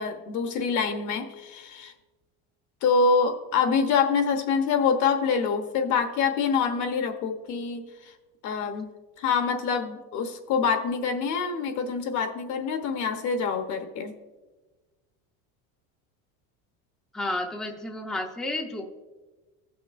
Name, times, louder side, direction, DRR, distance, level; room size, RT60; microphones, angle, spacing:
voice 1, 0.0-1.9 2.8-7.8 8.4-8.9 9.2-14.1, left 5 dB, 50° left, 7 dB, 1.0 m, -25 dB
voice 2, 17.1-18.9, left 1 dB, ahead, 1 dB, 0.6 m, -31 dB
15.5 x 6.0 x 2.5 m, 1.2 s
supercardioid pair, 125°, 38 cm